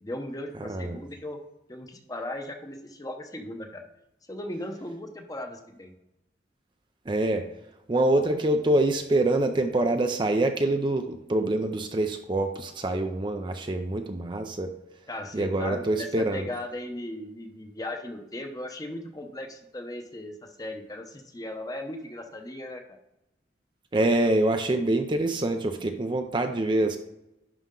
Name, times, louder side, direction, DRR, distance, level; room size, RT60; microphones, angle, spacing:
voice 1, 0.0-1.4 1.7-3.8 4.3-5.9 15.1-23.0, left 1 dB, 20° left, 5 dB, 0.8 m, -37 dB
voice 2, 0.6-1.0 7.1-7.5 7.9-14.7 15.3-16.5 23.9-27.0, right 2 dB, 25° right, 6 dB, 0.5 m, -25 dB
11.0 x 4.3 x 3.8 m, 0.88 s
head